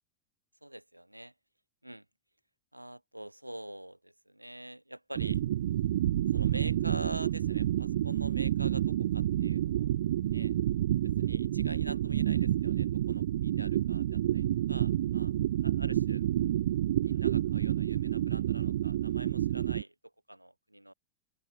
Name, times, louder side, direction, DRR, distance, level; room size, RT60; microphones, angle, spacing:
voice 1, 0.6-1.3 1.8-2.0 2.7-5.4 6.3-9.9 10.3-10.5 11.0-15.3 15.6-16.2 17.0-19.9 20.3-20.9, right 1 dB, 90° right, 2.8 m, -45 dB
sound 1, 5.2-19.8, right 12 dB, 60° right, 0.3 m, -29 dB
open air
figure-of-eight pair, 90°, 0 cm